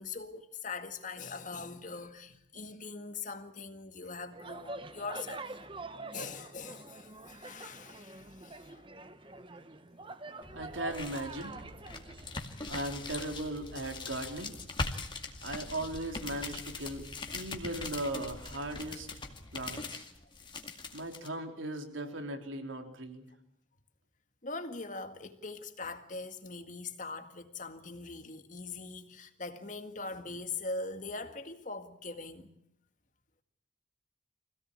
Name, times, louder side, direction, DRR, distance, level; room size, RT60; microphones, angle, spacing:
voice 1, 0.0-5.5 6.1-8.9 10.3-10.8 24.4-32.5, left 3 dB, 40° left, 2.0 m, -42 dB
sound 1, 4.3-12.4, right 2 dB, 25° right, 1.1 m, -45 dB
sound 2, 10.4-21.3, left 3 dB, 25° left, 2.2 m, -41 dB
voice 2, 10.5-11.6 12.7-14.5 15.4-17.1 17.3-19.1 19.5-20.0 20.9-23.3, right 1 dB, 85° right, 3.8 m, -38 dB
25.0 x 17.0 x 8.8 m
head